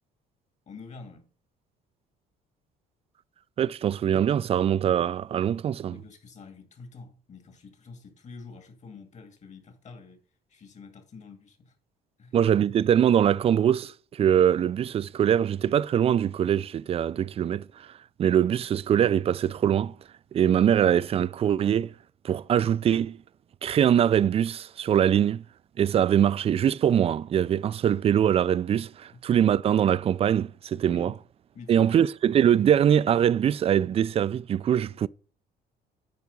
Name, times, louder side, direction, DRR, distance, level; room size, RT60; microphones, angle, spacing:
voice 1, 0.7-1.3 5.9-10.2 10.5-11.7 12.2-12.4 30.8-31.1 31.5-32.1, left 4 dB, 45° left, 2.3 m, -46 dB
voice 2, 3.6-5.9 12.3-17.9 18.2-19.9 20.3-21.9 22.2-23.2 23.6-25.4 25.8-31.1 31.7-35.1, right 9 dB, 35° right, 0.4 m, -23 dB
9.4 x 4.9 x 5.3 m
cardioid pair, 110°, 17 cm